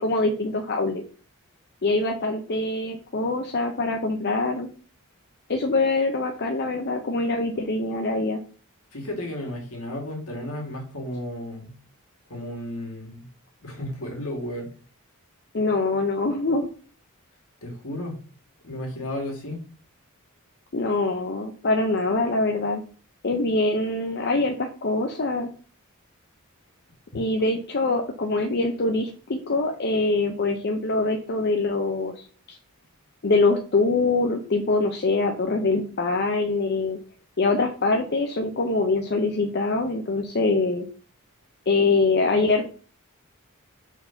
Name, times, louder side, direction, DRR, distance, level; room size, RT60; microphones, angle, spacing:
voice 1, 0.0-1.0 1.8-4.7 5.5-8.4 15.5-16.7 20.7-22.8 23.2-25.5 27.1-32.6 33.2-37.0 37.4-40.9 41.7-42.7, left 3 dB, 50° left, 3 dB, 0.7 m, -24 dB
voice 2, 8.9-11.8 12.3-13.3 13.6-14.7 17.6-18.2 18.6-19.6, left 1 dB, 70° left, 1 dB, 2.1 m, -33 dB
4.5 x 4.0 x 5.7 m, 0.39 s
head